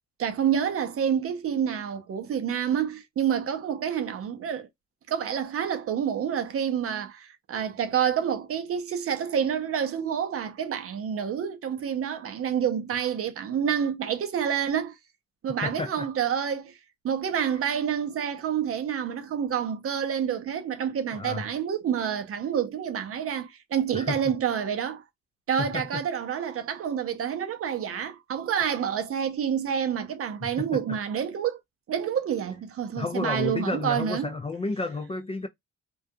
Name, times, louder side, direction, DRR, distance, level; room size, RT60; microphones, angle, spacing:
voice 1, 0.2-4.7 5.1-15.0 15.4-16.8 17.0-25.0 25.5-31.6 31.9-34.3, right 8 dB, 50° right, 0.6 m, -28 dB
voice 2, 15.6-16.1 21.1-21.5 23.9-24.2 25.6-26.0 30.4-31.0 33.0-35.5, left 3 dB, 20° left, 0.4 m, -31 dB
2.4 x 2.2 x 2.5 m
cardioid pair, 90°, 30 cm